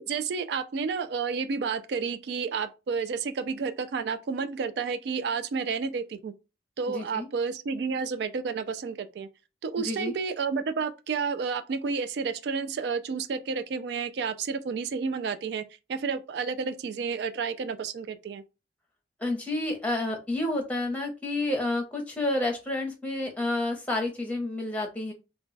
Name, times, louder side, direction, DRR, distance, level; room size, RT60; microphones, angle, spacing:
voice 1, 0.1-6.3 6.8-9.3 9.6-15.6 15.9-18.4, right 5 dB, 70° right, 0.3 m, -31 dB
voice 2, 6.9-7.3 9.8-10.1 19.2-25.1, left 2 dB, 10° left, 0.7 m, -30 dB
2.2 x 2.2 x 3.8 m
head